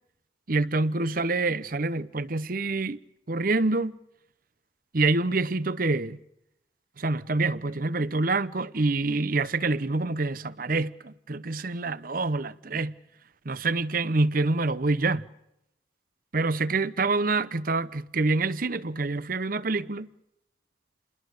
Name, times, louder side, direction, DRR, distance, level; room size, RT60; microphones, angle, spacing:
voice 1, 0.5-3.0 3.3-4.0 4.9-6.2 7.0-12.9 13.5-15.2 16.3-20.1, right 3 dB, 50° right, 0.8 m, -26 dB
29.0 x 21.0 x 6.6 m
head